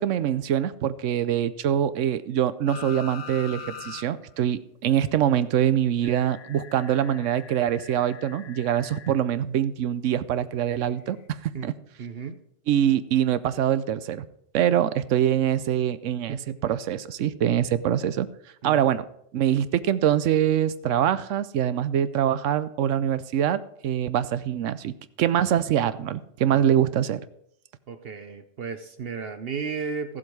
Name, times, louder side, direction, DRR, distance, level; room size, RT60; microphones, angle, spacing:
voice 1, 0.0-11.7 12.7-14.3 14.5-18.3 18.6-19.0 19.3-27.2, right 10 dB, 85° right, 15 dB, 1.0 m, -24 dB
sound 1, 2.7-4.1 4.4-4.5 6.0-9.2 10.9-11.0, left 7 dB, 75° left, 1.1 m, -42 dB
voice 2, 12.0-12.4 16.3-16.8 18.6-18.8 26.5-26.6 27.9-30.2, right 5 dB, 55° right, 8 dB, 0.9 m, -34 dB
14.5 x 7.5 x 4.7 m, 0.72 s
omnidirectional pair, 1.3 m